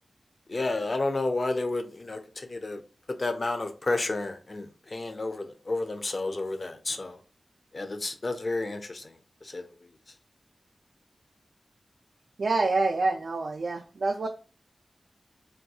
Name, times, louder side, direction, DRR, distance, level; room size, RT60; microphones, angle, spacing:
voice 1, 0.5-2.8 3.2-7.2 7.7-9.1 9.4-9.7, left 2 dB, 45° left, 0.5 m, -31 dB
voice 2, 12.4-14.3, right 3 dB, 70° right, 0.3 m, -26 dB
3.4 x 2.3 x 2.7 m
wide cardioid pair, 75°, 0 cm